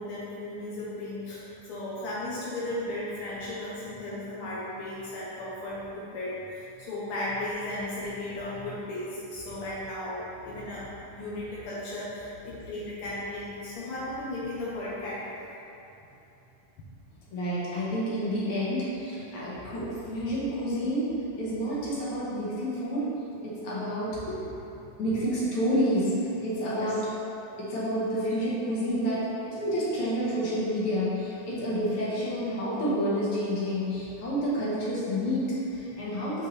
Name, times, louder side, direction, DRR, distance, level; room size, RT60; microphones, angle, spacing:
voice 1, 0.0-15.4 26.7-26.9, left 1 dB, 70° left, -7 dB, 1.3 m, -35 dB
voice 2, 17.3-21.1 21.4-23.1 23.4-24.5 25.0-27.1 27.6-36.5, equal, 55° left, -8 dB, 1.9 m, -29 dB
6.4 x 5.5 x 3.3 m, 2.9 s
omnidirectional pair, 3.6 m